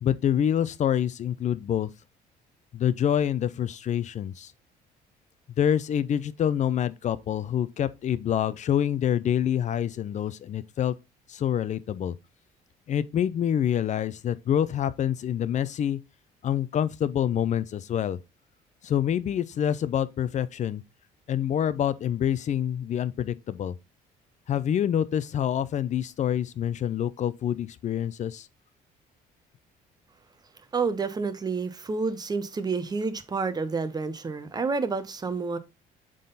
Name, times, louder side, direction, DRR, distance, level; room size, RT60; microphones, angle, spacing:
voice 1, 0.0-1.9 2.7-4.5 5.6-10.9 11.3-12.2 12.9-16.0 16.4-18.2 18.8-20.8 21.3-23.7 24.5-28.5, left 9 dB, 45° left, 0.5 m, -26 dB
voice 2, 30.7-35.6, right 4 dB, 25° right, 0.9 m, -29 dB
7.5 x 3.9 x 4.0 m
cardioid pair, 110°, 17 cm